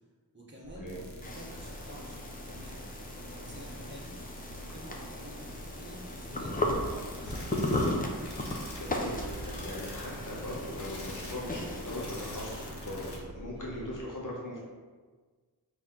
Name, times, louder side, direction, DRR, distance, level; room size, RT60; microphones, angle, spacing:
voice 1, 0.3-2.9 3.2-4.1 4.5-7.8 13.5-13.9, equal, 30° right, -4 dB, 1.1 m, -49 dB
sound 1, 0.6-14.0, right 1 dB, 85° right, 0.8 m, -48 dB
sound 2, 0.9-13.2, equal, 90° left, 0.9 m, -44 dB
sound 3, 1.2-12.7, left 1 dB, 20° left, 0.5 m, -36 dB
voice 2, 8.7-14.6, left 1 dB, 50° left, -3 dB, 1.2 m, -40 dB
4.1 x 2.9 x 3.8 m, 1.4 s
wide cardioid pair, 40°, 39 cm